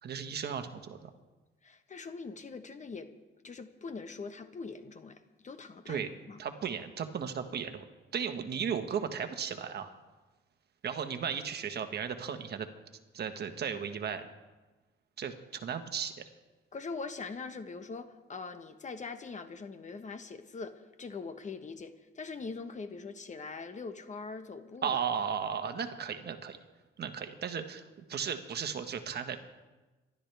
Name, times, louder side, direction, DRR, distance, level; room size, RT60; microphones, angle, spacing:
voice 1, 0.0-1.1 5.9-6.1 6.4-7.8 8.1-9.9 10.8-12.7 13.1-14.3 15.2-16.3 24.8-26.6 27.0-27.8 28.1-29.4, right 7 dB, 55° right, 7 dB, 1.4 m, -35 dB
voice 2, 1.6-3.1 3.4-6.4 16.7-25.0, left 4 dB, 35° left, 9 dB, 1.2 m, -42 dB
26.0 x 12.5 x 3.4 m, 1.2 s
cardioid pair, 90°, 20 cm